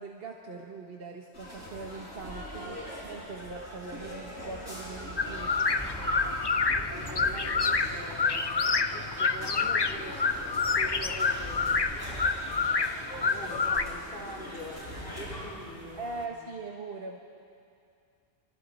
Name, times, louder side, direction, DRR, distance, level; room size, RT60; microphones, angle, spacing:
voice 1, 0.0-2.7 3.0-5.6 16.0-17.2, right 3 dB, 60° right, 0 dB, 1.5 m, -41 dB
sound 1, 1.3-15.4, equal, 75° left, 7.2 m, -42 dB
Gulls at Moelfre, 4.4-16.3, equal, 5° left, 2.9 m, -43 dB
sound 2, 5.2-13.8, left 4 dB, 30° left, 0.5 m, -28 dB
voice 2, 6.9-8.6 8.9-11.8 13.2-14.8 15.2-16.3, left 1 dB, 60° left, -4 dB, 4.5 m, -44 dB
27.0 x 23.5 x 4.2 m, 2.4 s
omnidirectional pair, 1.1 m